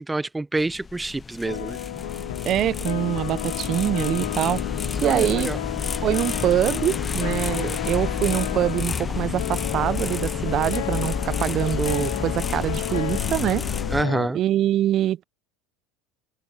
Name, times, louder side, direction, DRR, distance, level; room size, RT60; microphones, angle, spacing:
voice 1, 0.0-1.8 5.0-5.6 13.9-14.4, right 2 dB, 10° right, 1.1 m, -27 dB
sound 1, 0.6-14.0, left 5 dB, 25° left, 1.1 m, -30 dB
sound 2, 1.4-14.3, left 15 dB, 75° left, 0.9 m, -32 dB
voice 2, 2.4-4.6 5.0-5.5 6.0-13.6 14.3-15.2, right 12 dB, 45° right, 1.2 m, -24 dB
hypercardioid pair, 80°, 0 cm